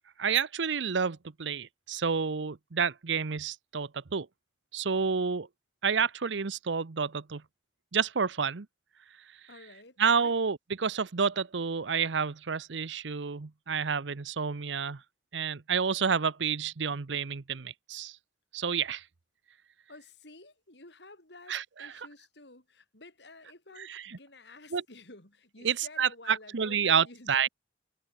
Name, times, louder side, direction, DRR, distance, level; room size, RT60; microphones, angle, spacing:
voice 1, 0.2-4.3 4.7-5.5 5.8-7.4 7.9-8.7 10.0-15.0 15.3-18.2 18.5-19.0 21.5-22.1 23.8-24.2 24.7-24.8 25.6-27.5, right 6 dB, 80° right, 0.8 m, -29 dB
voice 2, 9.5-10.3 19.9-27.5, left 2 dB, 65° left, 4.9 m, -52 dB
head